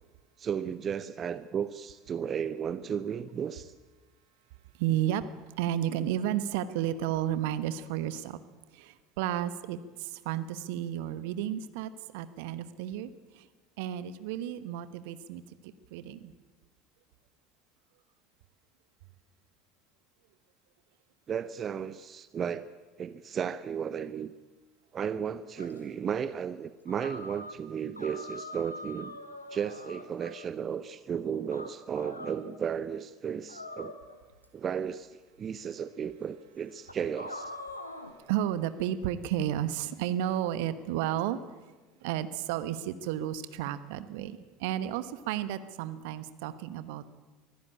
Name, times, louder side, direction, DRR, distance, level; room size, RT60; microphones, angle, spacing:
voice 1, 0.4-3.7 21.3-22.7 23.0-24.3 24.9-29.2 29.5-33.9 34.5-37.5, right 7 dB, 30° right, 15 dB, 0.7 m, -34 dB
voice 2, 4.8-5.3 5.6-8.4 8.7-13.5 13.8-16.3 38.3-41.6 42.0-47.2, right 11 dB, 60° right, 14 dB, 1.1 m, -32 dB
sound 1, 25.6-25.8 26.9-27.6 27.9-30.5 31.5-32.4 33.5-34.4 35.4-35.5 36.0-36.1 36.9-38.1, left 1 dB, 85° left, 1.7 m, -43 dB
23.0 x 15.5 x 8.7 m, 1.3 s
figure-of-eight pair, 70°, 0 cm